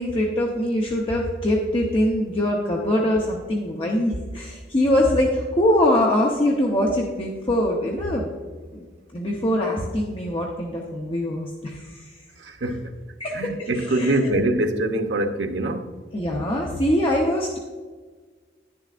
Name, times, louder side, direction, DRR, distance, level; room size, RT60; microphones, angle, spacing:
voice 1, 0.0-8.3 8.7-8.9 9.1-12.1 13.2-14.1 16.1-17.6, left 1 dB, 30° left, 0.9 m, -23 dB
voice 2, 12.4-12.9 13.3-15.9, right 1 dB, 90° right, 0.8 m, -24 dB
11.0 x 10.5 x 2.5 m
head